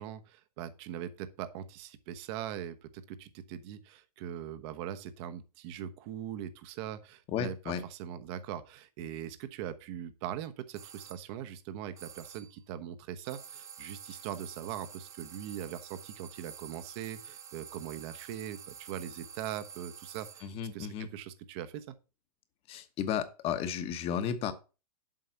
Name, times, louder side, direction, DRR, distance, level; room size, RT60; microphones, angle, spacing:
voice 1, 0.0-20.5 20.7-21.9, right 10 dB, 40° right, 1.1 m, -41 dB
voice 2, 7.3-7.8 14.1-14.2 20.4-21.1 22.7-24.5, left 8 dB, 30° left, 1.2 m, -34 dB
sound 1, 10.7-11.2 12.0-12.6 13.2-20.6, right 8 dB, 15° right, 0.6 m, -49 dB
7.6 x 5.3 x 5.9 m
hypercardioid pair, 120°, 20 cm